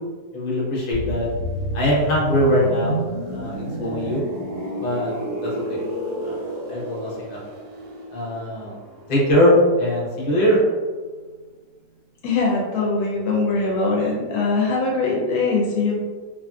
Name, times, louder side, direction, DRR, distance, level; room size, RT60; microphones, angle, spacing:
voice 1, 0.3-1.3 1.7-3.0 3.3-4.2 4.8-5.2 5.4-5.8 6.2-6.4 6.7-7.4 8.1-8.8 9.1-10.6, equal, 40° left, -6 dB, 0.6 m, -21 dB
sound 1, 0.9-10.6 10.8-11.1, right 1 dB, 85° right, 1.3 m, -31 dB
voice 2, 12.2-16.0, left 3 dB, 75° left, -2 dB, 1.1 m, -22 dB
2.8 x 2.5 x 2.3 m, 1.5 s
omnidirectional pair, 1.7 m